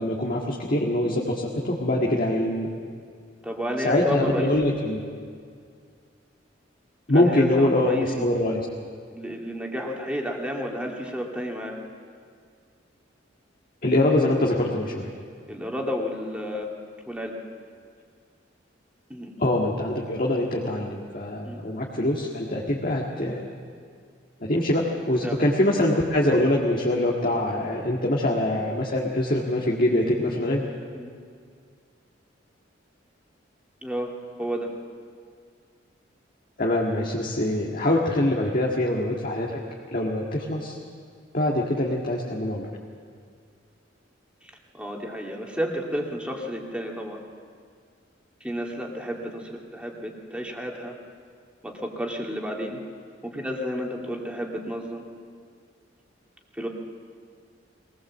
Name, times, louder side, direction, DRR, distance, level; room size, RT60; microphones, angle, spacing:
voice 1, 0.0-2.8 3.8-5.0 7.1-8.7 13.8-15.1 19.4-23.5 24.4-30.6 36.6-39.6 39.9-40.8 41.3-42.7, left 1 dB, 50° left, -2 dB, 1.9 m, -24 dB
voice 2, 3.4-4.7 7.1-8.2 9.1-11.9 15.5-16.7 17.1-17.4 19.1-19.3 21.4-21.6 25.2-25.4 30.9-31.1 33.8-34.1 34.4-34.7 44.4-47.2 48.4-51.0 51.6-52.8 53.2-55.1 56.5-56.7, equal, 5° right, 0 dB, 2.3 m, -31 dB
22.0 x 19.0 x 7.5 m, 2.1 s
head